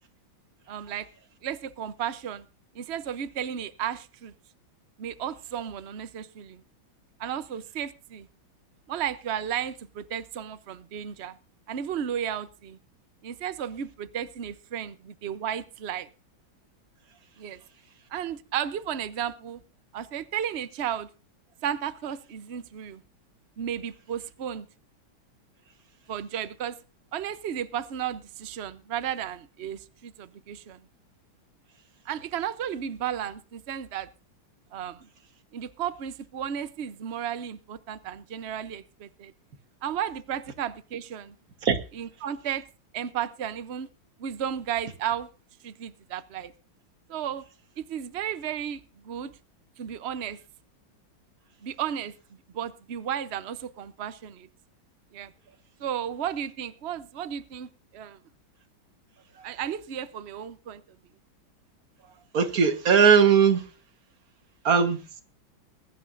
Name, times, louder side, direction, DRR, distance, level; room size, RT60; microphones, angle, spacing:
voice 1, 0.7-1.1 1.4-2.5 2.7-4.3 5.0-6.6 7.2-8.3 8.9-11.4 11.7-12.8 13.2-16.1 17.4-17.6 18.1-19.6 19.9-21.1 21.6-23.0 23.6-24.7 26.1-26.8 27.1-30.8 32.1-34.1 34.7-35.1 35.5-39.3 39.8-41.3 42.0-42.7 42.9-43.9 44.2-45.3 45.6-46.5 47.1-47.4 47.8-49.3 49.8-50.4 51.6-52.1 52.5-54.5 55.1-55.3 55.8-58.2 59.4-60.8, right 9 dB, 70° right, 0.6 m, -33 dB
voice 2, 62.3-63.7 64.6-65.2, right 6 dB, 50° right, 1.7 m, -20 dB
21.5 x 11.5 x 2.6 m
omnidirectional pair, 2.2 m